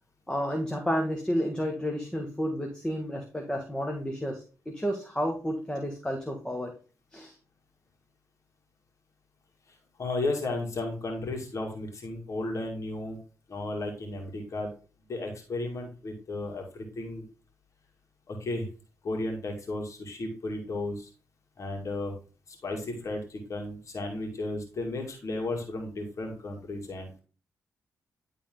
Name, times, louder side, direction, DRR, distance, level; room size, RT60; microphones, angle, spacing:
voice 1, 0.3-6.7 7.1-7.3, equal, 10° left, 2 dB, 1.5 m, -31 dB
voice 2, 10.0-13.2 13.5-14.7 15.1-17.3 18.3-18.7 19.0-21.1 21.6-22.1 22.6-27.2, left 2 dB, 60° left, 2 dB, 2.2 m, -34 dB
11.0 x 3.8 x 3.8 m, 0.36 s
cardioid pair, 60°, 6 cm